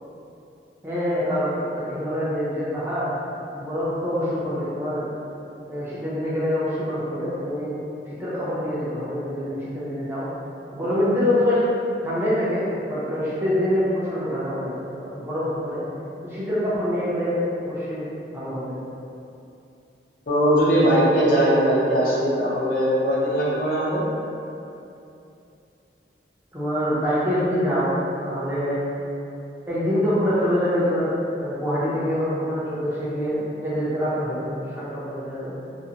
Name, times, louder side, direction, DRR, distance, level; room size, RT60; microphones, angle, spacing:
voice 1, 0.8-3.1 3.5-5.1 5.7-7.8 8.2-10.3 10.7-11.6 12.0-15.8 16.2-18.1 18.3-18.8 26.5-28.9 29.7-31.1 31.4-35.5, equal, 15° right, -10 dB, 0.4 m, -25 dB
voice 2, 20.3-24.0, equal, 50° left, -8 dB, 0.5 m, -20 dB
2.5 x 2.0 x 2.7 m, 2.7 s
head